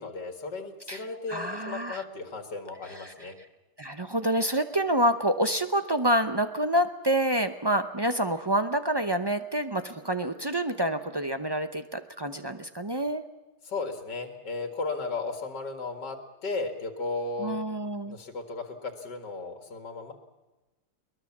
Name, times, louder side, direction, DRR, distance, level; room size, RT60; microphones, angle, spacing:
voice 1, 0.0-3.3 13.7-17.5 18.1-20.1, left 3 dB, 80° left, 6 dB, 2.6 m, -35 dB
voice 2, 0.9-2.0 2.8-3.5 3.8-13.2 17.4-18.2, right 1 dB, 35° right, 9 dB, 0.3 m, -28 dB
22.5 x 20.0 x 7.3 m, 1.1 s
omnidirectional pair, 1.8 m